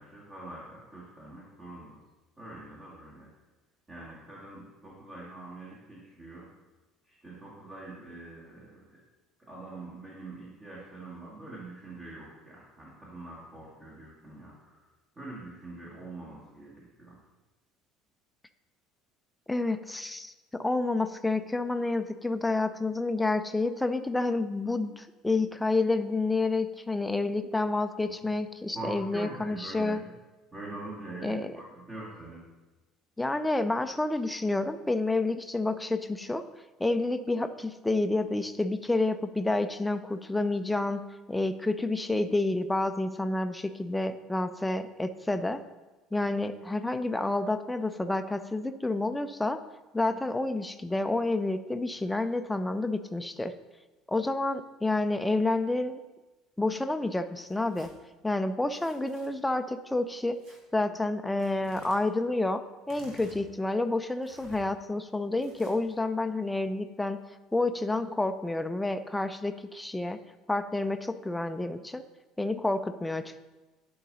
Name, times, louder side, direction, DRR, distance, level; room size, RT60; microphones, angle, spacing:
voice 1, 0.0-2.0 2.4-3.3 3.9-6.5 7.0-9.0 9.4-14.9 15.2-17.2 28.1-28.2 28.7-30.1 30.5-32.5, right 2 dB, 25° right, -6 dB, 2.1 m, -44 dB
voice 2, 19.5-30.0 31.2-31.5 33.2-36.4 36.8-45.6 46.1-49.6 49.9-53.5 54.1-56.0 56.6-57.9 58.2-60.4 60.7-67.2 67.5-70.2 70.5-72.0 72.4-73.4, left 2 dB, 10° left, 10 dB, 0.5 m, -29 dB
Tearing, 57.4-57.9 58.7-59.3 60.4-60.6 61.4-62.0 62.8-63.4 64.2-64.6 65.4-65.9, equal, 55° right, 2.0 m, -53 dB
11.0 x 3.9 x 4.1 m, 1.1 s
figure-of-eight pair, 60°, 0 cm